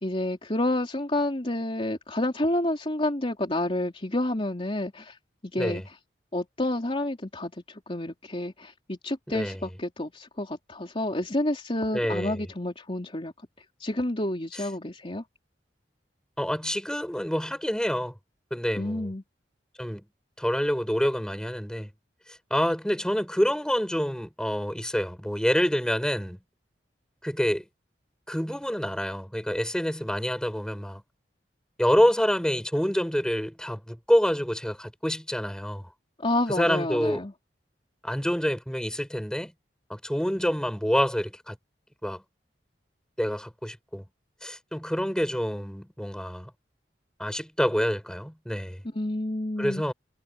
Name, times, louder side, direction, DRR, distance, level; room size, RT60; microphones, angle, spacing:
voice 1, 0.0-5.2 5.4-5.8 6.3-13.3 13.8-15.2 18.8-19.2 36.2-37.3 48.9-49.9, left 1 dB, 35° left, 3.4 m, -29 dB
voice 2, 9.3-9.6 11.9-12.5 16.4-18.1 18.5-19.1 19.8-20.0 20.4-21.9 22.5-26.4 27.2-27.6 28.3-31.0 31.8-35.8 36.6-37.2 38.0-39.5 39.9-41.6 42.0-42.2 43.2-44.0 44.4-46.5 47.2-48.8 49.6-49.9, equal, 5° left, 7.4 m, -27 dB
head